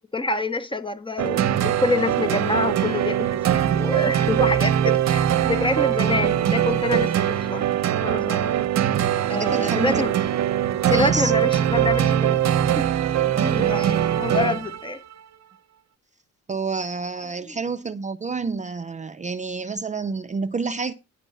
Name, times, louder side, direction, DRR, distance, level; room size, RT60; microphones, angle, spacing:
voice 1, 0.1-7.6 8.0-8.6 9.3-10.1 10.8-12.4 12.8-12.9 13.4-15.0, left 2 dB, 15° left, 1.0 m, -26 dB
sound 1, 1.2-14.9, right 10 dB, 60° right, 0.8 m, -22 dB
voice 2, 9.3-10.1 10.9-11.3 13.3-13.7 16.5-20.9, right 4 dB, 25° right, 0.5 m, -29 dB
9.9 x 5.9 x 5.4 m
cardioid pair, 90°, 30 cm